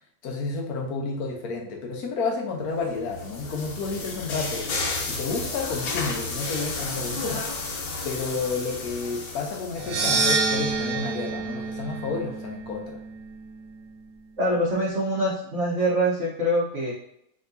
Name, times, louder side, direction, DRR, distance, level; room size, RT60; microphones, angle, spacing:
voice 1, 0.2-7.5 8.0-13.0, left 4 dB, 60° left, 2 dB, 1.1 m, -31 dB
sound 1, 2.8-10.4, left 3 dB, 80° left, 1.6 m, -32 dB
sound 2, 9.8-14.1, right 4 dB, 70° right, 1.2 m, -28 dB
voice 2, 14.4-16.9, equal, 45° right, -6 dB, 1.1 m, -24 dB
4.3 x 3.8 x 2.6 m, 0.75 s
omnidirectional pair, 2.1 m